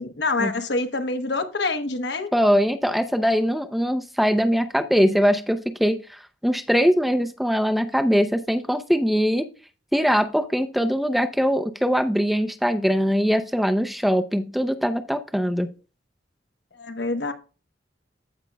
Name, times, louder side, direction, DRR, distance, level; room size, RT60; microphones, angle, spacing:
voice 1, 0.0-2.3 16.8-17.3, left 3 dB, 65° left, 1.0 m, -26 dB
voice 2, 2.3-9.5 9.9-15.7, equal, ahead, 0.5 m, -22 dB
15.0 x 5.1 x 2.3 m
head